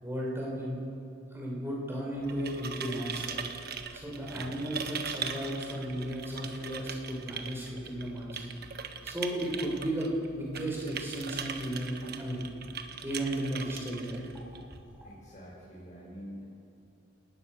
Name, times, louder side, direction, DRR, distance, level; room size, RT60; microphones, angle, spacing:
voice 1, 0.0-0.8 1.3-3.4 3.9-8.4 9.0-12.5 13.0-14.2, right 1 dB, 10° right, -3 dB, 6.3 m, -34 dB
sound 1, 2.1-14.8, right 6 dB, 55° right, 1.4 m, -41 dB
voice 2, 15.0-16.5, equal, 40° left, -7 dB, 6.4 m, -46 dB
29.0 x 19.0 x 6.9 m, 2.6 s
head